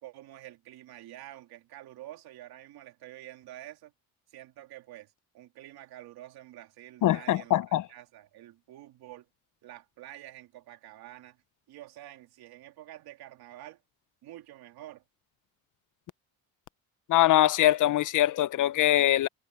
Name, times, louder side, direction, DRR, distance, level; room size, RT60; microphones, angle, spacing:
voice 1, 0.0-3.9 4.3-9.3 9.6-11.4 11.7-13.8 14.2-15.0, right 14 dB, 80° right, 3.3 m, -48 dB
voice 2, 7.0-7.8 17.1-19.3, left 13 dB, 55° left, 0.6 m, -23 dB
cardioid pair, 120°, 37 cm